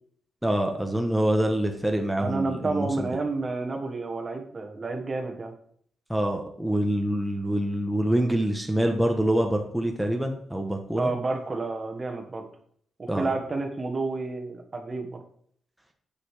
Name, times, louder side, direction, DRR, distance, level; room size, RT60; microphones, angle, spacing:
voice 1, 0.4-3.1 6.1-11.1 13.1-13.3, right 1 dB, 5° right, 2 dB, 1.2 m, -25 dB
voice 2, 2.1-5.5 11.0-12.5 13.0-15.2, right 3 dB, 35° right, 4 dB, 1.4 m, -30 dB
8.6 x 6.1 x 4.9 m, 0.63 s
cardioid pair, 85°, 0 cm